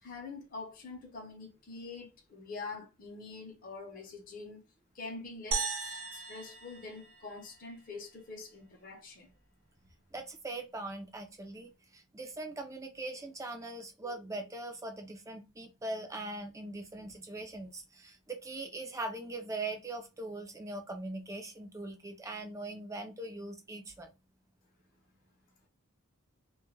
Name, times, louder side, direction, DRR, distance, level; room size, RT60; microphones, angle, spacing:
voice 1, 0.0-4.6 4.9-9.3, left 3 dB, 40° left, 0.6 m, -45 dB
sound 1, 5.5-7.9, right 5 dB, 75° right, 0.6 m, -37 dB
voice 2, 10.1-24.1, right 2 dB, 15° right, 0.4 m, -41 dB
2.2 x 2.1 x 3.1 m
head